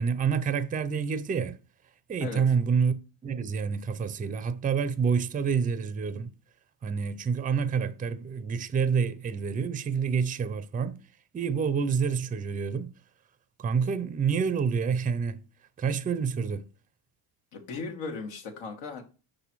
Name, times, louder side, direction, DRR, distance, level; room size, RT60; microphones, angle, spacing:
voice 1, 0.0-1.6 2.1-3.0 3.2-6.3 6.8-11.0 11.3-12.9 13.6-15.4 15.8-16.7, right 6 dB, 20° right, 0.4 m, -28 dB
voice 2, 17.5-19.0, left 4 dB, 85° left, 1.7 m, -37 dB
6.0 x 3.3 x 5.9 m
cardioid pair, 100°, 49 cm